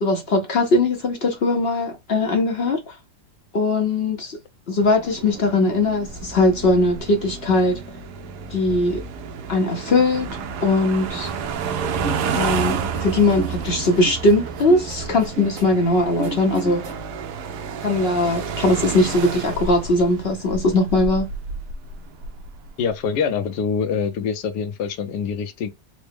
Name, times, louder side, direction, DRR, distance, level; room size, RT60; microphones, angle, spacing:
voice 1, 0.0-3.0 3.5-4.4 4.7-7.8 8.5-9.0 9.5-10.3 10.6-11.3 12.3-16.8 17.8-21.3, left 2 dB, 55° left, 0.7 m, -20 dB
sound 1, 4.8-23.0, right 5 dB, 75° right, 1.2 m, -31 dB
sound 2, 11.0-17.2 17.5-18.8, right 2 dB, 50° right, 1.4 m, -36 dB
voice 2, 22.8-25.7, left 6 dB, 85° left, 1.3 m, -25 dB
4.2 x 2.1 x 3.2 m
omnidirectional pair, 1.8 m